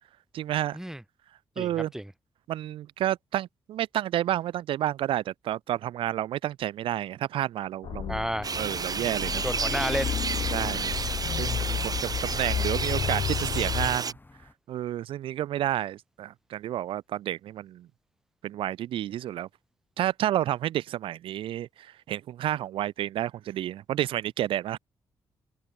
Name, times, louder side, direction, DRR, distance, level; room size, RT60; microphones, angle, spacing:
voice 1, 0.3-0.8 1.6-1.9 2.5-8.1 8.6-9.5 10.5-11.0 11.3-14.1 14.7-17.9 18.4-19.5 20.0-24.8, right 12 dB, 85° right, 1.0 m, -30 dB
voice 2, 1.6-2.1 8.1-8.5 9.4-10.2, right 1 dB, 5° right, 3.2 m, -31 dB
sound 1, 7.8-14.0, left 9 dB, 70° left, 1.3 m, -32 dB
sound 2, 8.4-14.1, right 5 dB, 45° right, 2.3 m, -31 dB
sound 3, 9.1-14.5, left 2 dB, 20° left, 5.4 m, -52 dB
cardioid pair, 65°, 9 cm